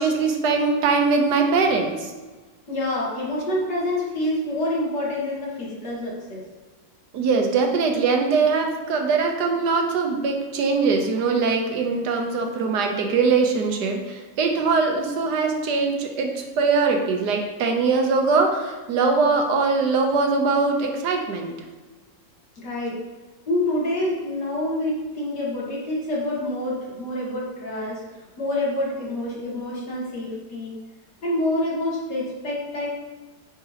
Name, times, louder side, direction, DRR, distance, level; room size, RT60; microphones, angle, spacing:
voice 1, 0.0-2.1 7.1-21.5, right 4 dB, 75° right, 3 dB, 1.4 m, -22 dB
voice 2, 2.7-6.4 22.6-23.0 23.5-28.0 28.4-30.7 31.2-32.9, left 1 dB, 75° left, -4 dB, 2.4 m, -27 dB
9.3 x 4.8 x 2.9 m, 1.3 s
omnidirectional pair, 1.8 m